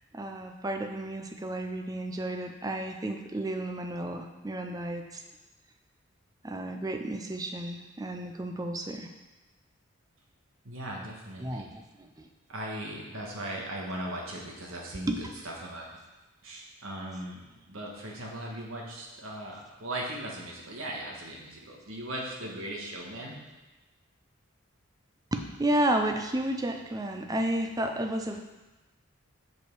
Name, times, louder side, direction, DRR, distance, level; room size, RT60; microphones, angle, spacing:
voice 1, 0.1-5.2 6.4-9.1 11.4-12.3 15.1-15.3 25.3-28.4, right 1 dB, 15° right, 5 dB, 0.5 m, -32 dB
voice 2, 10.6-11.6 12.5-15.1 15.4-15.9 16.4-17.4 17.7-23.3, right 1 dB, 85° right, -2 dB, 1.5 m, -38 dB
6.2 x 5.5 x 4.6 m, 1.1 s
head